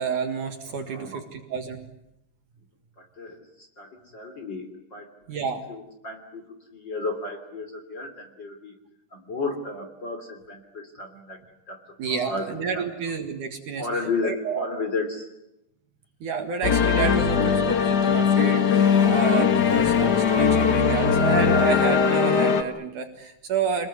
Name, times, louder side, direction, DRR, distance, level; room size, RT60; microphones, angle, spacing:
voice 1, 0.0-1.8 5.3-5.6 12.0-13.9 14.2-14.7 16.2-23.9, right 6 dB, 55° right, 6 dB, 3.0 m, -29 dB
voice 2, 0.7-1.2 3.0-5.1 5.7-6.4 6.7-8.7 9.1-11.4 11.7-11.8 12.1-12.9 13.8-15.3, left 3 dB, 30° left, 6 dB, 3.2 m, -33 dB
sound 1, 16.6-22.6, left 6 dB, 80° left, 0.9 m, -20 dB
28.0 x 21.0 x 9.6 m, 0.85 s
omnidirectional pair, 4.6 m